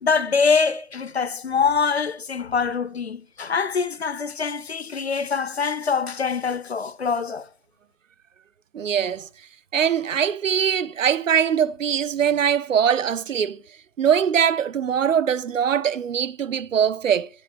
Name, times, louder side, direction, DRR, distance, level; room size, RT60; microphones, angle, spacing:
voice 1, 0.0-7.5, left 5 dB, 55° left, 0.6 m, -24 dB
voice 2, 8.7-9.3 9.7-13.6 14.0-17.3, right 8 dB, 70° right, 0.6 m, -22 dB
11.0 x 5.2 x 6.7 m
hypercardioid pair, 175°, 39 cm